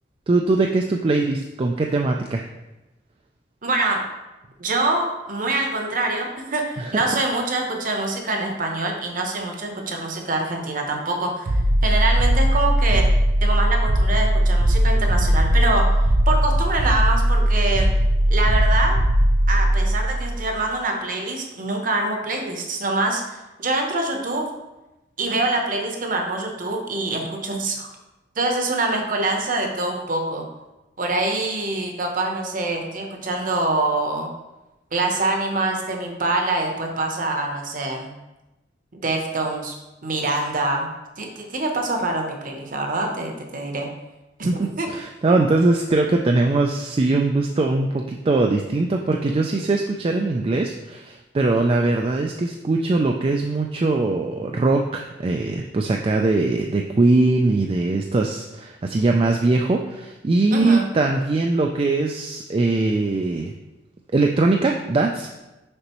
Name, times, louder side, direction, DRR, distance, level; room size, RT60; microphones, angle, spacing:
voice 1, 0.3-2.4 6.8-7.1 44.5-63.5 64.1-65.3, right 2 dB, 30° right, 2 dB, 0.3 m, -21 dB
voice 2, 3.6-4.0 4.6-11.5 11.8-13.1 13.4-15.9 16.3-17.9 18.3-19.0 19.5-24.5 25.2-27.9 28.4-30.4 31.0-34.3 34.9-38.1 39.0-39.7 40.0-40.9 41.2-43.9 44.4-44.9 60.5-60.9, right 2 dB, 45° right, 2 dB, 0.9 m, -25 dB
sound 1, 11.5-20.6, equal, 75° right, 0.6 m, -18 dB
6.6 x 5.2 x 3.0 m, 1.0 s
head